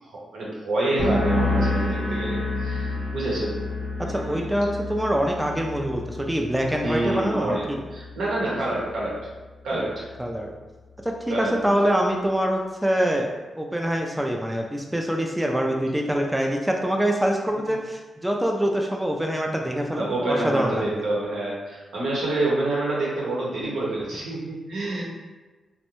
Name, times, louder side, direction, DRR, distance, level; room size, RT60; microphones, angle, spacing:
voice 1, 0.0-3.5 4.0-4.4 6.8-9.2 9.6-10.0 11.3-11.7 19.9-25.0, right 2 dB, 85° right, -5 dB, 0.8 m, -27 dB
sound 1, 1.0-8.4 8.7-9.3, left 2 dB, 80° left, 0.7 m, -29 dB
voice 2, 4.0-7.8 9.7-9.9 10.2-10.5 11.0-21.0, equal, 10° right, 1 dB, 0.3 m, -25 dB
2.6 x 2.1 x 2.9 m, 1.2 s
cardioid pair, 75°, 0 cm